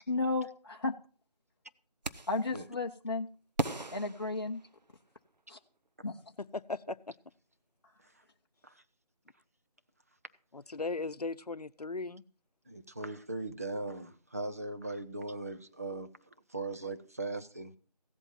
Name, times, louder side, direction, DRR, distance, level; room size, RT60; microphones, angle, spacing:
voice 1, 0.1-0.9 2.3-3.3 3.9-4.6 5.5-5.6 6.0-6.2, left 3 dB, 35° left, 0.8 m, -33 dB
sound 1, 2.0-2.5 3.6-5.1, right 2 dB, 85° right, 1.1 m, -37 dB
voice 2, 6.5-7.0 10.5-12.2, left 3 dB, 70° left, 0.8 m, -37 dB
voice 3, 12.7-16.1 16.5-17.7, right 2 dB, 20° right, 0.6 m, -39 dB
16.0 x 8.1 x 5.6 m
figure-of-eight pair, 165°, 21 cm